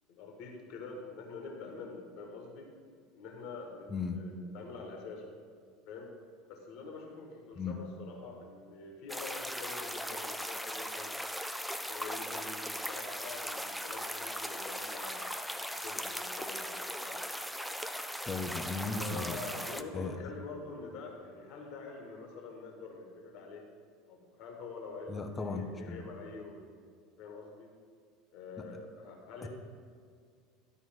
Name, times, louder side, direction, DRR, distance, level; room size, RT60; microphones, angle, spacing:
voice 1, 0.1-2.7 3.1-5.3 5.9-6.1 6.5-11.1 11.7-15.3 15.8-17.2 19.0-23.7 24.1-26.6 27.2-27.7 28.3-29.5, left 3 dB, 50° left, 1 dB, 1.6 m, -46 dB
sound 1, 9.1-19.8, equal, ahead, 0.5 m, -38 dB
voice 2, 18.2-19.4 19.9-20.2 25.1-26.0 29.4-29.5, left 4 dB, 20° left, 4 dB, 0.9 m, -36 dB
12.5 x 4.6 x 7.6 m, 2.1 s
figure-of-eight pair, 70°, 0 cm